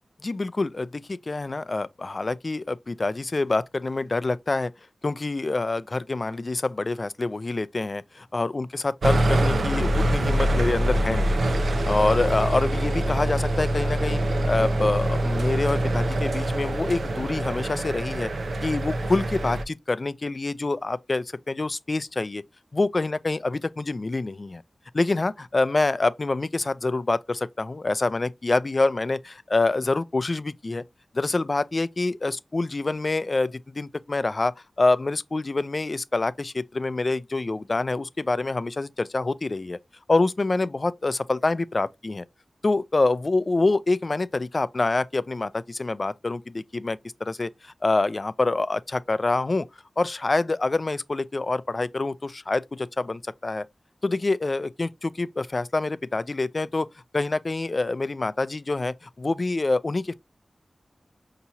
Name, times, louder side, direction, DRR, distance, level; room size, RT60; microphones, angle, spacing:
voice 1, 0.2-4.7 5.0-11.4 11.7-14.2 14.5-18.3 18.6-22.4 22.7-24.6 24.9-30.8 31.1-39.8 40.1-42.2 42.6-49.7 50.0-53.7 54.0-56.9 57.1-60.1, left 3 dB, 40° left, 0.3 m, -26 dB
sound 1, 9.0-19.6, right 1 dB, 80° right, 0.5 m, -24 dB
5.5 x 2.9 x 2.7 m
wide cardioid pair, 105°, 0 cm